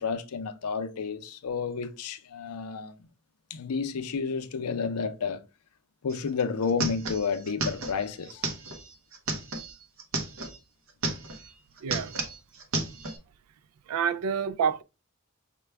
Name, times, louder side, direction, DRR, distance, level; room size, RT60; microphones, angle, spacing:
voice 1, 0.0-3.0 3.5-5.4 6.0-8.5, left 5 dB, 85° left, 0.5 m, -31 dB
sound 1, 6.1-6.2 6.4-10.6 10.9-11.5 11.8-13.2, right 2 dB, 60° right, 0.8 m, -33 dB
voice 2, 11.8-12.2 13.9-14.8, right 7 dB, 85° right, 0.3 m, -28 dB
5.8 x 2.2 x 3.3 m
head